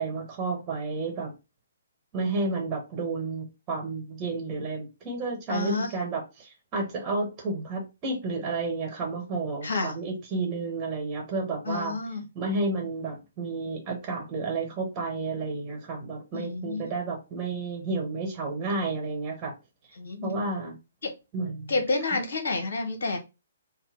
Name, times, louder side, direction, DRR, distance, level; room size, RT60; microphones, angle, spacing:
voice 1, 0.0-1.3 2.1-11.9 12.3-19.5 20.2-20.8 21.3-21.7, right 3 dB, 25° right, 1 dB, 1.2 m, -31 dB
voice 2, 5.5-5.9 9.6-9.9 11.6-12.2 16.3-16.9 20.0-20.3 21.0-21.1 21.7-23.2, left 3 dB, 55° left, 6 dB, 1.1 m, -29 dB
4.0 x 2.1 x 3.8 m, 0.26 s
figure-of-eight pair, 130°, 0 cm